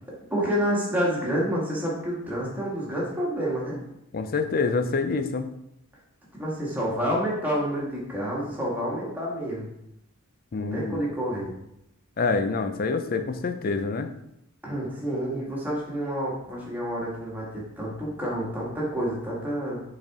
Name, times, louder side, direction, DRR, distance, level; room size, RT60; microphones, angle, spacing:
voice 1, 0.1-3.8 6.3-9.7 10.6-11.5 14.6-19.8, equal, 10° right, -5 dB, 1.8 m, -29 dB
voice 2, 4.1-5.5 10.5-11.0 12.2-14.1, left 4 dB, 45° left, 9 dB, 0.5 m, -26 dB
6.4 x 4.1 x 3.6 m, 0.80 s
head